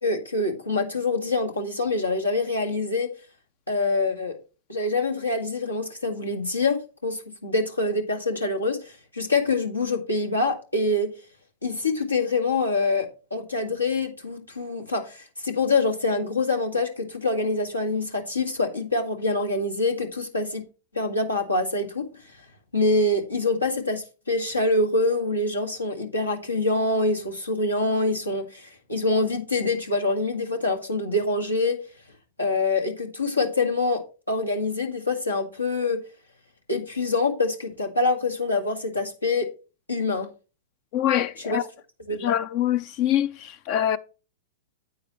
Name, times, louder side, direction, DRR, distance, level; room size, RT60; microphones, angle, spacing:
voice 1, 0.0-3.1 3.7-4.4 4.7-11.1 11.6-20.6 20.9-22.0 22.7-31.8 32.4-34.0 34.3-36.0 36.7-39.5 39.9-40.3 41.5-41.6 42.1-42.3, left 2 dB, 90° left, 1.8 m, -25 dB
voice 2, 40.9-41.7 42.1-44.0, left 11 dB, 45° left, 0.4 m, -24 dB
9.6 x 8.6 x 3.1 m
figure-of-eight pair, 100°, 0 cm